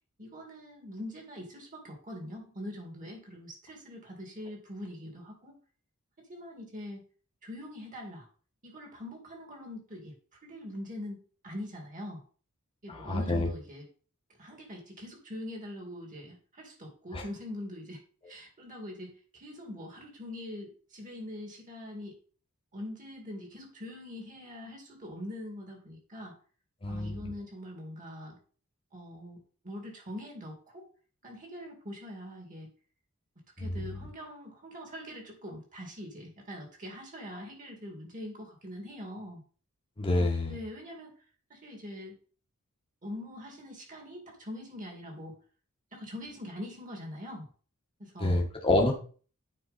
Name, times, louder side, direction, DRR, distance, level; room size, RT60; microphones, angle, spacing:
voice 1, 0.2-5.6 6.3-7.0 7.4-8.3 8.6-10.1 10.4-12.2 12.8-13.8 14.4-18.0 18.3-22.1 22.7-26.3 26.9-28.4 28.9-29.4 29.6-30.8 31.2-32.7 33.6-39.4 40.1-41.1 41.5-42.2 43.0-45.4 45.9-47.5 48.0-48.4, left 1 dB, 35° right, 2 dB, 2.2 m, -43 dB
voice 2, 12.9-13.5 17.1-17.2 26.8-27.3 33.6-34.1 40.0-40.6 48.2-48.9, left 2 dB, 25° left, 0 dB, 1.2 m, -28 dB
8.9 x 4.5 x 4.1 m, 0.41 s
head